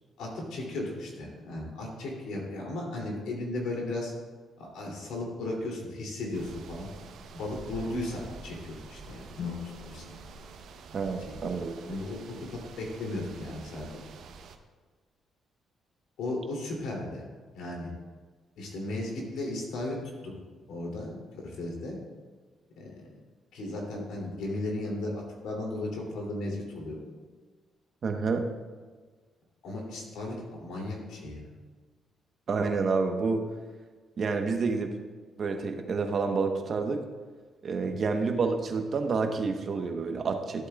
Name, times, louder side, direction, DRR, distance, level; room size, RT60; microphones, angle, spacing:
voice 1, 0.2-4.1 4.6-6.9 7.3-9.5 9.9-10.0 11.8-13.9 16.2-17.3 17.5-17.9 18.6-20.0 20.2-20.3 20.7-22.0 22.8-23.0 23.5-27.0 29.6-31.4, left 2 dB, 85° left, -1 dB, 2.7 m, -35 dB
sound 1, 6.3-14.6, right 4 dB, 70° right, 0.8 m, -47 dB
sound 2, 9.3-11.8, left 9 dB, 65° left, 0.6 m, -44 dB
voice 2, 10.9-11.7 28.0-28.5 32.5-33.4 34.2-34.9 35.4-37.0 37.6-40.7, right 4 dB, 50° right, 5 dB, 1.0 m, -29 dB
13.5 x 8.1 x 2.3 m, 1.4 s
cardioid pair, 90°, 0 cm